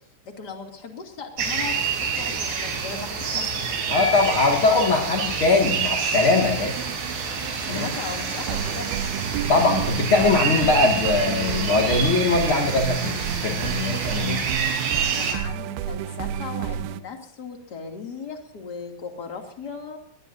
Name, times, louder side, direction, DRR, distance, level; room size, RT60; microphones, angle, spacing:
voice 1, 0.3-3.7 7.7-9.0 15.1-20.0, left 5 dB, 30° left, 3 dB, 2.2 m, -37 dB
sound 1, 1.4-15.3, right 5 dB, 60° right, 5.7 m, -28 dB
sound 2, 2.5-17.0, right 10 dB, 80° right, 3.3 m, -32 dB
voice 2, 3.9-6.9 7.7-7.9 9.5-14.5, left 3 dB, 45° left, 0 dB, 1.7 m, -21 dB
23.0 x 19.5 x 2.7 m, 0.62 s
omnidirectional pair, 5.8 m